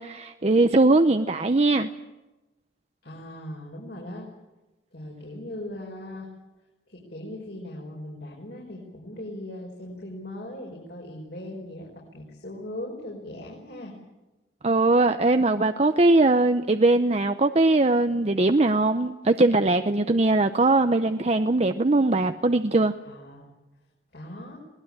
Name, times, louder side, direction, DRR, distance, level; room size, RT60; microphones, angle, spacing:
voice 1, 0.0-1.9 14.6-22.9, right 2 dB, 35° right, 8 dB, 0.7 m, -21 dB
voice 2, 3.0-4.3 4.9-6.3 6.9-13.9 23.0-23.5 24.1-24.6, left 1 dB, 60° left, -2 dB, 5.1 m, -39 dB
22.0 x 19.0 x 8.8 m, 1.1 s
head